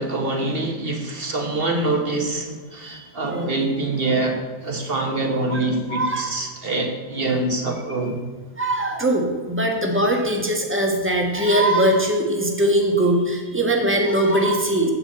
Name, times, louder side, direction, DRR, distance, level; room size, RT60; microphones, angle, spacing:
voice 1, 0.0-8.2, right 2 dB, 35° right, 2 dB, 1.2 m, -25 dB
voice 2, 5.9-6.4 8.6-14.9, right 1 dB, 10° right, 1 dB, 1.0 m, -21 dB
9.8 x 8.2 x 4.3 m, 1.4 s
omnidirectional pair, 2.0 m